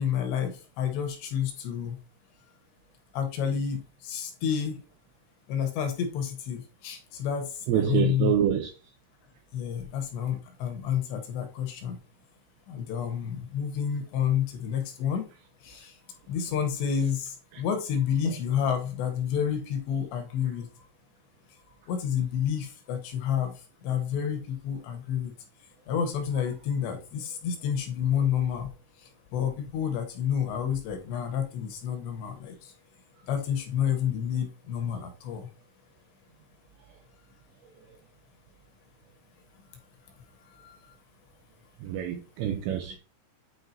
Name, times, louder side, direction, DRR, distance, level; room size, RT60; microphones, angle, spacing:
voice 1, 0.0-1.9 3.1-4.8 5.5-8.3 9.5-12.0 12.7-15.2 15.6-15.9 16.3-20.7 21.9-23.5 23.8-25.3 25.9-28.7 29.3-32.7 33.3-35.5 40.6-40.7, left 8 dB, 75° left, 2.9 m, -29 dB
voice 2, 7.7-8.7 41.8-43.0, right 10 dB, 85° right, 2.4 m, -26 dB
9.4 x 4.7 x 2.7 m
omnidirectional pair, 5.6 m